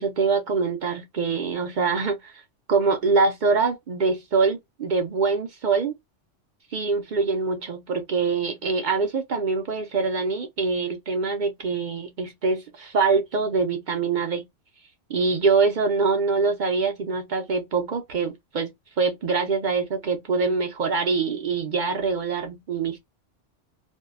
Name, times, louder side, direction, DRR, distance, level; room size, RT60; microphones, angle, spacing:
voice 1, 0.0-2.4 2.7-5.9 6.7-14.4 15.1-18.7 19.0-23.0, right 4 dB, 60° right, 0.5 m, -24 dB
2.6 x 2.1 x 2.3 m
omnidirectional pair, 1.3 m